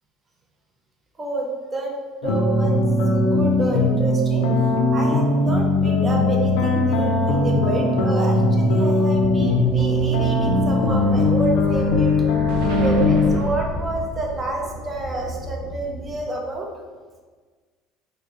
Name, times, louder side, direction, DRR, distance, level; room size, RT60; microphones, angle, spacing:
voice 1, 1.2-1.9 2.2-2.8 3.1-4.5 4.9-12.1 12.8-16.7, right 3 dB, 20° right, 0 dB, 0.6 m, -29 dB
sound 1, 2.2-13.4, left 2 dB, 80° left, 0.5 m, -19 dB
sound 2, 9.1-16.2, right 1 dB, 25° left, 0.6 m, -35 dB
Explosion, 10.0-14.7, right 1 dB, 80° right, 0.7 m, -33 dB
4.9 x 2.2 x 3.0 m, 1.5 s
cardioid pair, 135°, 0 cm